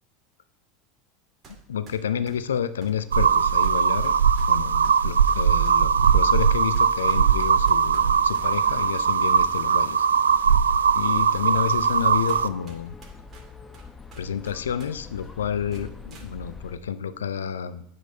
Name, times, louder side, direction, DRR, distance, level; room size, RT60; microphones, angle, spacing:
sound 1, 1.4-1.6 1.9-8.5 9.1-9.9 10.3-10.4 11.1-11.2 11.8-12.0 12.3-14.9 15.2-15.3 15.7-16.3, right 3 dB, 30° right, 2.4 m, -48 dB
voice 1, 1.7-4.1 4.5-10.1 10.9-13.0 14.2-17.8, left 8 dB, 75° left, 13 dB, 0.4 m, -30 dB
sound 2, 3.1-12.5, right 7 dB, 80° right, 0.3 m, -20 dB
sound 3, 7.8-16.8, left 4 dB, 15° left, 0.9 m, -44 dB
9.3 x 5.2 x 5.5 m, 0.85 s
figure-of-eight pair, 80°, 0 cm